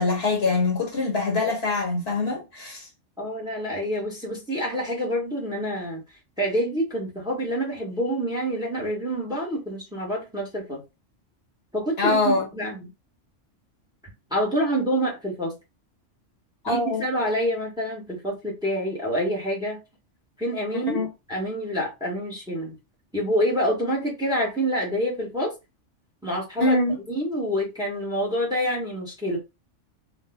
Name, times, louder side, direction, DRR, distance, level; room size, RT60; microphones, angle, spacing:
voice 1, 0.0-2.9 12.0-12.4 16.6-17.0 20.9-21.1 26.6-26.9, left 3 dB, 60° left, 1.4 m, -23 dB
voice 2, 3.2-6.0 6.4-10.8 11.7-12.9 14.3-15.5 16.7-19.8 20.4-21.0 21.3-22.8 23.1-25.5 26.2-26.8 27.1-29.4, equal, 5° right, 1.2 m, -27 dB
4.0 x 2.5 x 2.2 m
omnidirectional pair, 1.2 m